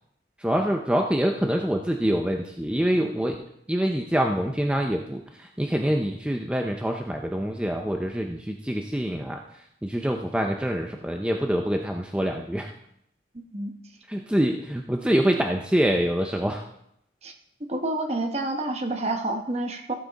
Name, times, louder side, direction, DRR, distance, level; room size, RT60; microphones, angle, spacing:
voice 1, 0.4-3.4 3.7-12.7 14.1-16.6, equal, 5° right, 3 dB, 0.5 m, -25 dB
voice 2, 13.3-13.7 17.2-17.3 17.7-19.9, right 2 dB, 35° right, 5 dB, 1.1 m, -28 dB
15.5 x 7.4 x 4.0 m, 0.76 s
head